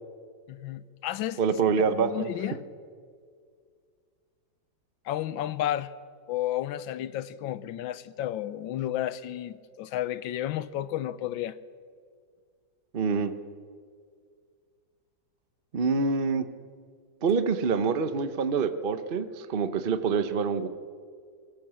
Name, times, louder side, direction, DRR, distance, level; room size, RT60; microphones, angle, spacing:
voice 1, 0.5-1.4 1.9-2.6 5.1-5.9 6.3-11.6, left 12 dB, 80° left, 1.4 m, -32 dB
voice 2, 1.4-2.3 12.9-13.3 15.7-16.4 17.2-20.7, right 5 dB, 45° right, 0.7 m, -26 dB
22.0 x 17.0 x 7.6 m
omnidirectional pair, 2.1 m